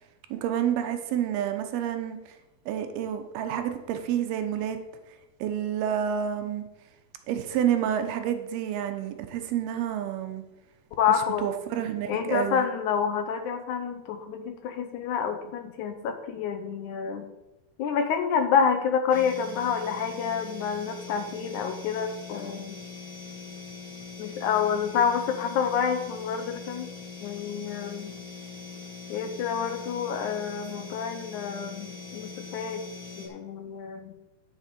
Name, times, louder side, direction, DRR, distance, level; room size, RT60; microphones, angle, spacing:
voice 1, 0.3-2.2 2.7-4.8 5.4-6.6 7.3-10.4 11.4-12.7, right 9 dB, 90° right, 7 dB, 2.9 m, -29 dB
voice 2, 11.0-11.5 12.1-17.3 17.8-22.8 24.2-26.9 27.2-28.1 29.1-32.8 33.2-34.1, left 7 dB, 75° left, 7 dB, 1.8 m, -28 dB
sound 1, 19.1-33.3, left 4 dB, 15° left, 1.6 m, -42 dB
10.0 x 7.0 x 5.3 m, 0.98 s
omnidirectional pair, 4.3 m